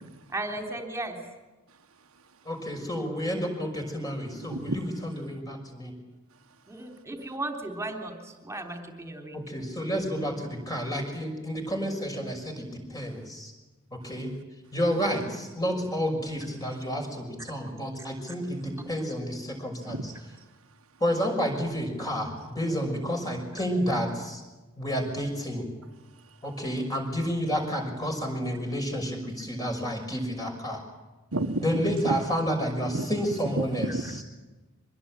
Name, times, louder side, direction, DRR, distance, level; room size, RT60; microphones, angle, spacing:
voice 1, 0.3-1.2 6.7-9.4 14.9-15.1, right 2 dB, 15° right, 3.5 m, -35 dB
voice 2, 2.5-5.9 9.3-13.5 13.9-14.3 14.7-20.1 21.0-24.4 24.8-25.7 26.4-30.8 31.6-33.9, equal, 20° left, 6.1 m, -30 dB
voice 3, 4.5-4.8 19.9-20.2 31.3-32.2 32.9-33.1 33.4-34.2, right 2 dB, 80° right, 1.6 m, -31 dB
24.5 x 21.0 x 8.9 m
head